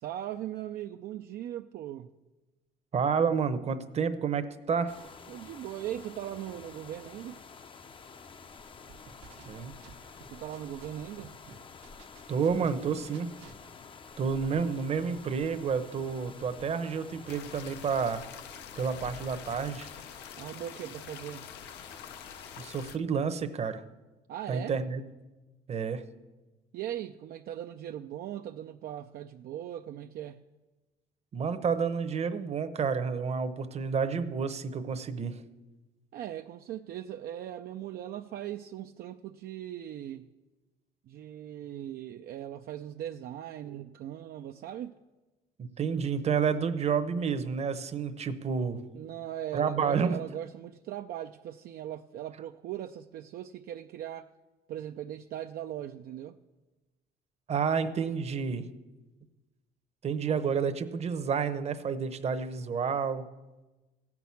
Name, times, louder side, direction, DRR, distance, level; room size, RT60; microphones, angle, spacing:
voice 1, 0.0-2.1 5.3-7.4 10.3-11.4 20.4-21.5 24.3-24.8 26.7-30.4 36.1-40.3 41.1-45.0 48.9-54.3 54.7-56.4, right 11 dB, 65° right, 0.4 m, -39 dB
voice 2, 2.9-4.9 9.5-9.7 12.3-13.3 14.2-18.2 18.8-19.9 22.6-23.8 24.5-25.0 25.7-26.0 31.3-35.4 45.6-48.8 49.5-50.2 57.5-58.7 60.0-63.3, right 6 dB, 40° right, 0.8 m, -30 dB
sound 1, 4.9-22.7, left 5 dB, 30° left, 0.6 m, -50 dB
sound 2, 8.9-10.9 11.2-13.6, right 5 dB, 80° right, 1.1 m, -53 dB
sound 3, 17.3-23.0, left 9 dB, 80° left, 0.6 m, -47 dB
15.0 x 6.0 x 8.4 m
cardioid pair, 110°, 17 cm